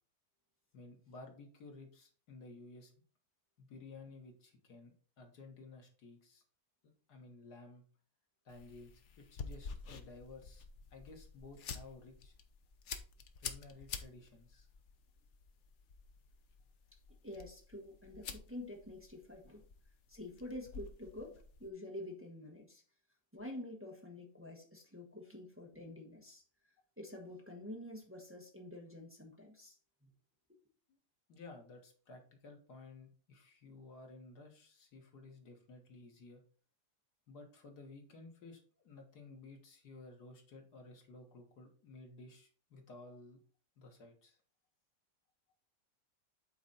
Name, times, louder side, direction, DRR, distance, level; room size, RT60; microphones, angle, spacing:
voice 1, 0.7-2.9 3.6-6.4 6.8-7.8 8.5-12.3 13.4-14.7 30.9-31.0 31.3-36.4 37.3-43.4 43.8-44.4, left 3 dB, 85° left, 2 dB, 2.1 m, -55 dB
sound 1, 8.5-21.7, left 6 dB, 55° left, 1.0 m, -50 dB
voice 2, 17.2-19.6 20.1-22.8 23.3-26.4 27.0-29.8 30.0-30.1, left 1 dB, 10° right, 0 dB, 1.2 m, -48 dB
8.2 x 4.3 x 4.0 m, 0.42 s
omnidirectional pair, 1.7 m